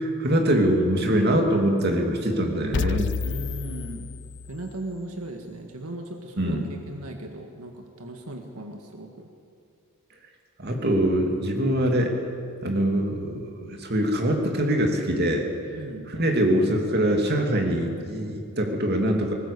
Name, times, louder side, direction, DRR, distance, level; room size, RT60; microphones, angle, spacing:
voice 1, 0.0-3.1 6.4-6.7 10.6-12.3 12.6-15.5 16.1-19.3, right 1 dB, 45° right, 2 dB, 2.7 m, -23 dB
sound 1, 2.7-4.8, left 5 dB, 55° left, 0.4 m, -30 dB
voice 2, 3.2-4.1 4.5-6.6 6.9-9.3 15.7-16.1, right 1 dB, 80° right, 3 dB, 2.0 m, -37 dB
19.5 x 19.0 x 8.5 m, 2.5 s
head